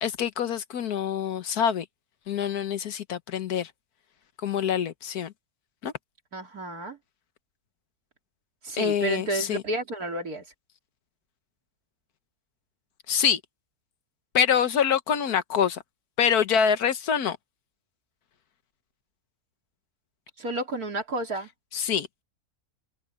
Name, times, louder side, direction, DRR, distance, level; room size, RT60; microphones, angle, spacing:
voice 1, 0.0-1.8 2.3-3.7 4.4-5.3 5.8-5.9 8.8-9.6 13.1-13.4 14.3-15.8 16.2-17.4 21.7-22.1, left 8 dB, 80° left, 1.6 m, -25 dB
voice 2, 6.3-7.0 8.6-10.4 20.4-21.5, right 2 dB, 75° right, 3.7 m, -31 dB
omnidirectional pair, 1.6 m